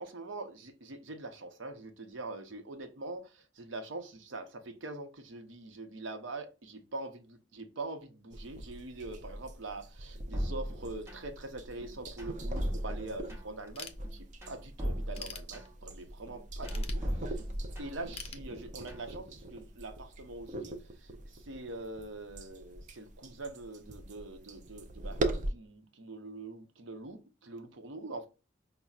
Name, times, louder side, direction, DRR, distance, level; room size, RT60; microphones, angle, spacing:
voice 1, 0.0-17.4 17.8-28.3, right 2 dB, 85° right, 0.7 m, -44 dB
sound 1, 8.3-25.5, right 1 dB, 40° right, 0.5 m, -41 dB
sound 2, 10.3-11.5 11.8-13.7 14.0-15.9 16.3-18.1 18.5-19.1, equal, 15° right, 0.8 m, -38 dB
Ratchet pawl / Tools, 13.8-14.5 14.9-16.1 16.6-17.6 18.1-19.1, left 6 dB, 35° left, 0.5 m, -46 dB
5.4 x 2.0 x 2.4 m
head